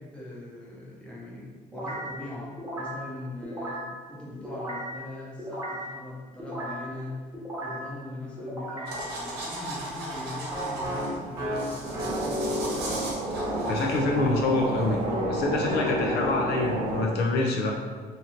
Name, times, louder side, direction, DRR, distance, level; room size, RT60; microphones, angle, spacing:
voice 1, 0.0-7.1 7.6-12.4, left 1 dB, 5° left, -6 dB, 0.8 m, -41 dB
sound 1, 1.7-2.2 2.6-3.1 3.4-3.9 4.4-5.0 5.4-5.9 6.4-6.9 7.3-7.9 8.4-9.0 10.5-13.8 15.0-16.9, left 1 dB, 20° right, 1.0 m, -33 dB
sound 2, 8.9-15.1, right 1 dB, 75° right, 0.9 m, -37 dB
sound 3, 11.8-17.1, right 3 dB, 55° right, 0.5 m, -32 dB
voice 2, 13.7-17.8, left 2 dB, 70° left, 0 dB, 0.5 m, -26 dB
2.8 x 2.6 x 2.8 m, 1.5 s
cardioid pair, 110°, 17 cm